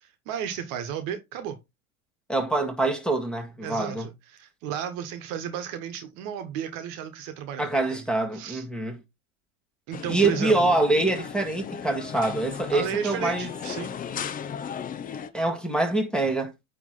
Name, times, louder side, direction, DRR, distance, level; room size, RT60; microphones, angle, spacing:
voice 1, 0.0-1.6 3.6-8.0 8.3-8.6 9.9-10.7 12.7-13.9, right 9 dB, 45° right, 1.4 m, -34 dB
voice 2, 2.3-4.1 7.6-9.0 10.1-13.5 15.3-16.5, right 2 dB, ahead, 1.8 m, -25 dB
sound 1, 9.9-15.3, left 7 dB, 20° left, 0.6 m, -36 dB
9.3 x 3.3 x 3.8 m
hypercardioid pair, 90°, 44 cm